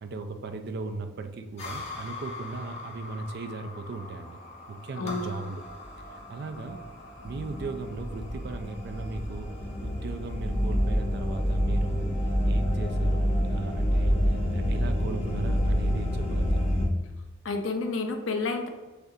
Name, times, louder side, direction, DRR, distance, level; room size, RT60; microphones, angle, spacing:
voice 1, 0.0-4.4 4.7-5.6 6.1-6.8 7.2-9.5 9.8-12.1 12.4-16.7, right 3 dB, 55° right, 7 dB, 0.4 m, -37 dB
sound 1, 1.6-16.9, equal, 35° left, 1.0 m, -29 dB
voice 2, 5.0-5.3 17.4-18.7, left 3 dB, 75° left, 5 dB, 0.6 m, -30 dB
6.6 x 2.4 x 2.7 m, 1.2 s
head